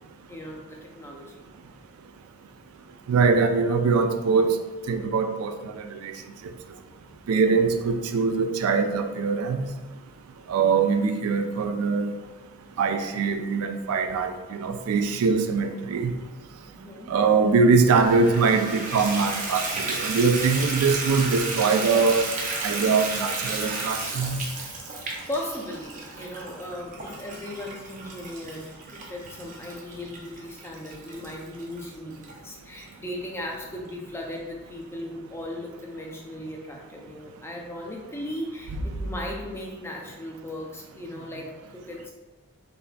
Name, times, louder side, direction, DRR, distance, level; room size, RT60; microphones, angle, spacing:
voice 1, 0.3-1.4 16.7-17.2 24.9-42.1, left 1 dB, 10° left, 0 dB, 0.4 m, -37 dB
voice 2, 3.1-4.6 4.9-6.1 7.3-9.7 10.5-12.1 12.8-16.1 17.1-22.3 22.6-24.4, right 4 dB, 75° right, 7 dB, 0.3 m, -22 dB
Water tap faucet / Bathtub (filling or washing), 18.0-32.3 32.9-33.0 33.5-33.6 33.9-34.0, right 3 dB, 35° right, 0.6 m, -33 dB
3.9 x 3.3 x 2.2 m, 1.3 s
head